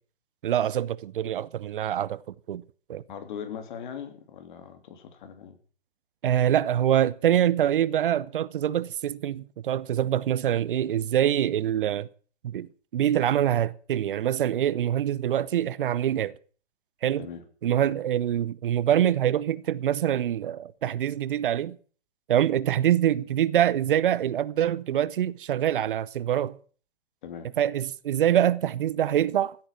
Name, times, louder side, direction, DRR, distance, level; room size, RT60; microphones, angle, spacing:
voice 1, 0.4-2.2 2.5-2.6 2.9-3.0 6.2-12.1 12.5-12.7 12.9-16.3 17.0-17.3 17.6-21.8 22.3-26.6 27.6-29.6, right 11 dB, 55° right, 0.8 m, -25 dB
voice 2, 3.1-5.6 17.2-17.4 17.8-18.0 27.2-27.5, left 8 dB, 50° left, 3.2 m, -40 dB
15.5 x 8.9 x 7.4 m
hypercardioid pair, 125°, 31 cm